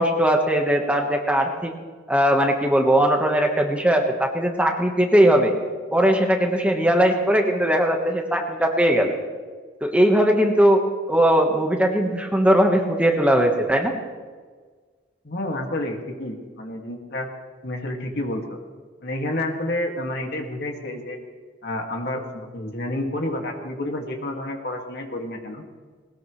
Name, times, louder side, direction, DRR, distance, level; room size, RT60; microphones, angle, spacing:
voice 1, 0.0-1.7 2.1-5.5 5.9-9.2 9.8-10.8 11.1-14.0, equal, 5° right, 2 dB, 1.3 m, -19 dB
voice 2, 15.2-17.3 17.6-18.4 19.0-21.2 21.6-25.6, left 1 dB, 55° left, 2 dB, 2.1 m, -29 dB
20.0 x 19.0 x 3.2 m, 1.5 s
head